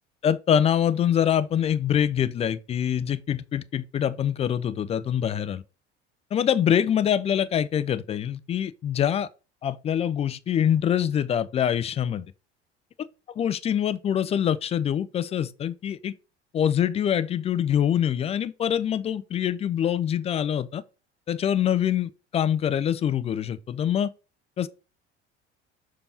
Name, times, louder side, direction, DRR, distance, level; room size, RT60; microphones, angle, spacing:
voice 1, 0.2-5.6 6.3-9.3 9.6-12.2 13.4-16.1 16.5-20.8 21.3-24.1 24.6-24.7, left 9 dB, 20° left, 0.3 m, -24 dB
6.8 x 2.9 x 5.0 m
figure-of-eight pair, 65°, 34 cm